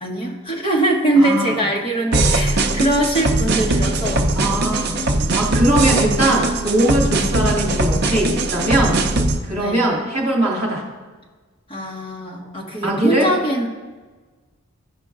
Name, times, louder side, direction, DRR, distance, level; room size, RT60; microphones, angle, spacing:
voice 1, 0.0-4.3 9.6-9.8 11.7-13.7, right 1 dB, 25° left, -1 dB, 1.1 m, -21 dB
voice 2, 1.2-1.6 4.3-5.0 5.3-9.0 9.4-10.8 12.8-13.3, right 1 dB, 30° right, -4 dB, 2.3 m, -20 dB
sound 1, 2.1-9.4, right 2 dB, 45° right, 0.5 m, -20 dB
13.5 x 5.1 x 2.4 m, 1.3 s
head